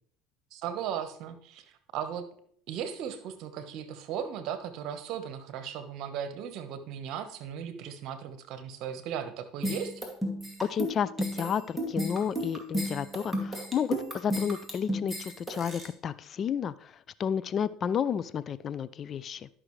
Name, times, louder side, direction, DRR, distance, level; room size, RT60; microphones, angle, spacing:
voice 1, 0.5-2.3 2.7-9.9, right 8 dB, 60° right, 9 dB, 1.1 m, -37 dB
sound 1, 9.6-15.9, equal, ahead, 2.3 m, -33 dB
voice 2, 10.6-16.9 17.2-19.5, left 8 dB, 40° left, 17 dB, 0.4 m, -31 dB
11.5 x 6.1 x 3.2 m, 0.63 s
supercardioid pair, 85°, 0 cm